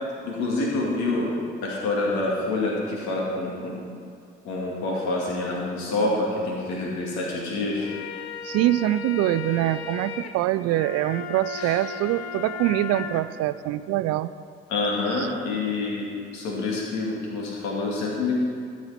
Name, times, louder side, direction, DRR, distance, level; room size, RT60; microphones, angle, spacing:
voice 1, 0.2-1.3 1.6-3.8 4.4-7.9 11.6-11.8 14.7-18.4, left 2 dB, 65° left, -3 dB, 2.3 m, -27 dB
sound 1, 7.6-13.2, left 6 dB, 85° left, 0.6 m, -36 dB
voice 2, 8.4-14.3 15.2-15.3, right 14 dB, 55° right, 15 dB, 0.5 m, -24 dB
12.5 x 7.4 x 4.3 m, 2.3 s
figure-of-eight pair, 50°, 31 cm